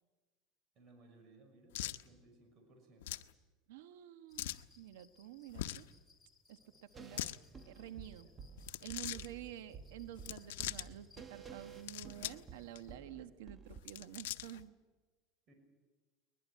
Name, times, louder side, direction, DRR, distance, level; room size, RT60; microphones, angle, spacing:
voice 1, 0.7-3.3 6.6-6.9 8.2-8.4 9.1-9.3 15.5-15.6, right 2 dB, 45° right, 4 dB, 5.9 m, -63 dB
sound 1, 1.7-2.0 3.0-3.3 4.4-4.7 5.5-5.9 7.0-7.4 8.6-9.3 10.2-10.9 11.7-12.5 12.8-12.9 13.7-14.6, left 15 dB, 90° left, 0.8 m, -42 dB
voice 2, 3.7-4.5 4.8-5.9 6.5-7.3 7.6-8.3 8.8-14.8, right 12 dB, 85° right, 11 dB, 1.1 m, -50 dB
sound 2, 4.3-13.0, left 4 dB, 5° left, 5.5 m, -68 dB
sound 3, 6.9-13.8, right 5 dB, 20° right, 1.4 m, -53 dB
21.0 x 21.0 x 9.4 m, 1.3 s
supercardioid pair, 135°, 0 cm